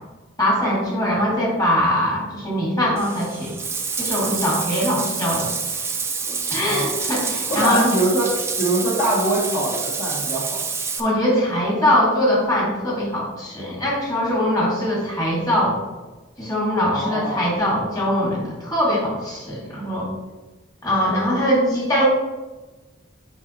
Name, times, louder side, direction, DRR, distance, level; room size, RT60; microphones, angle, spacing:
voice 1, 0.4-3.5 4.0-5.5 6.5-7.9 11.0-15.8 16.4-20.1 20.8-22.1, equal, 20° left, -4 dB, 2.0 m, -22 dB
Bathtub (filling or washing), 3.0-11.0, right 5 dB, 15° right, 0.5 m, -27 dB
voice 2, 7.5-8.3 8.6-10.6 16.9-17.4, right 1 dB, 40° left, -7 dB, 1.5 m, -23 dB
8.1 x 5.2 x 3.0 m, 1.2 s
head